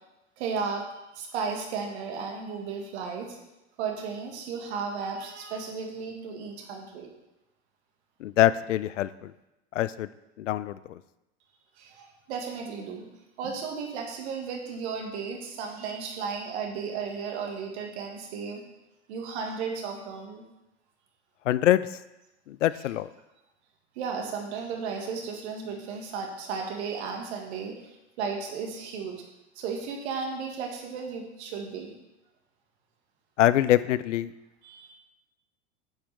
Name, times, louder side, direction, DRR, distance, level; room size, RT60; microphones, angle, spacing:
voice 1, 0.4-3.4 3.8-7.1 11.8-13.1 13.4-18.6 19.1-20.4 22.7-22.8 24.0-29.2 29.6-31.9 34.6-34.9, right 5 dB, 65° right, 2 dB, 2.0 m, -34 dB
voice 2, 8.2-9.3 9.8-10.1 10.4-11.0 21.5-21.8 22.5-23.1 33.4-34.3, left 13 dB, 80° left, 16 dB, 0.5 m, -24 dB
9.4 x 7.2 x 3.5 m, 0.94 s
hypercardioid pair, 85°, 36 cm